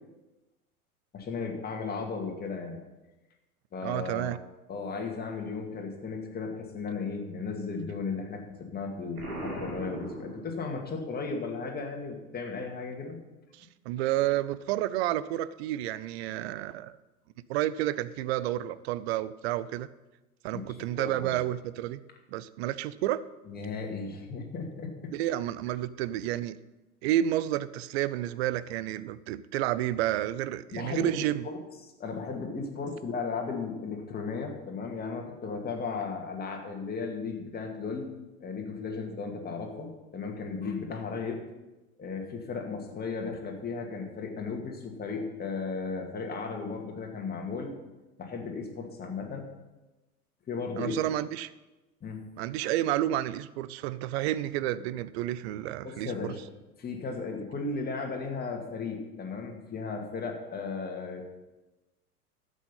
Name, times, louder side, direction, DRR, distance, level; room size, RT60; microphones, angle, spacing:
voice 1, 1.1-2.8 3.7-4.4 4.7-13.2 20.5-20.6 21.0-21.4 23.4-25.1 30.7-38.1 38.4-41.5 42.0-47.7 48.2-49.5 50.5-51.0 52.0-52.2 55.8-56.4 56.8-61.3, left 4 dB, 20° left, 2 dB, 2.3 m, -35 dB
voice 2, 3.8-4.4 13.6-16.9 17.5-19.9 20.4-22.0 22.3-23.2 25.1-26.6 27.0-31.4 50.8-51.5 52.4-56.3, right 13 dB, 45° right, 17 dB, 0.6 m, -30 dB
Explosion, 9.2-11.0, right 1 dB, 75° right, 3.5 m, -39 dB
12.5 x 8.4 x 5.6 m, 1.1 s
figure-of-eight pair, 90°, 45 cm